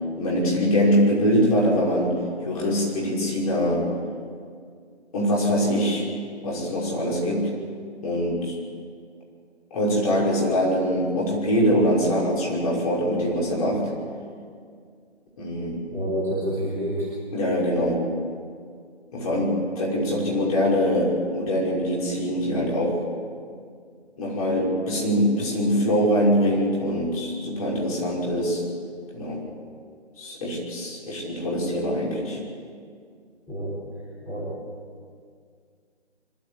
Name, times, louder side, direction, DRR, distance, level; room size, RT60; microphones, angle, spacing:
voice 1, 0.2-2.1 2.4-3.8 5.1-6.1 6.4-7.5 8.0-8.6 9.7-13.9 15.4-15.8 17.3-18.0 19.1-23.0 24.2-28.6 29.1-29.4 30.2-32.4, equal, 30° left, -5 dB, 5.7 m, -23 dB
voice 2, 15.9-17.1 33.5-33.7 34.2-34.5, equal, 5° left, -10 dB, 3.8 m, -28 dB
25.0 x 12.5 x 8.4 m, 2.1 s
figure-of-eight pair, 155°, 34 cm